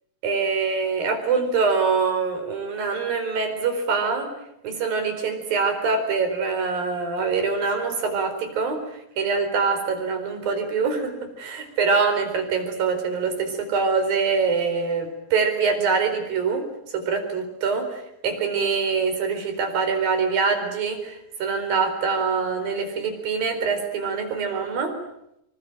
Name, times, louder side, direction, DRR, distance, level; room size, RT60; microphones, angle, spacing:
voice 1, 0.2-4.3 4.6-16.7 16.9-24.9, right 5 dB, 85° right, 6 dB, 6.2 m, -24 dB
26.0 x 23.5 x 9.0 m, 0.80 s
omnidirectional pair, 4.0 m